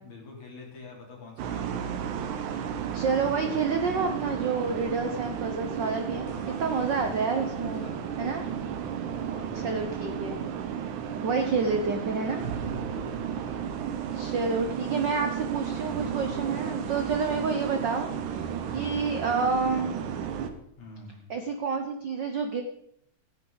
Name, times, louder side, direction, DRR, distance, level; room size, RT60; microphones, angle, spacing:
voice 1, 0.0-2.0 6.2-7.0 7.5-8.3 9.1-10.2 12.3-13.3 20.8-21.2, left 3 dB, 70° left, -2 dB, 4.7 m, -47 dB
sound 1, 1.4-20.5, right 8 dB, 90° right, 2.5 m, -33 dB
voice 2, 2.9-6.3 6.6-7.9 8.2-8.5 9.6-10.4 11.2-12.4 14.1-20.0 21.3-22.6, right 4 dB, 75° right, 5 dB, 1.0 m, -29 dB
14.5 x 10.5 x 4.0 m, 0.71 s
omnidirectional pair, 3.4 m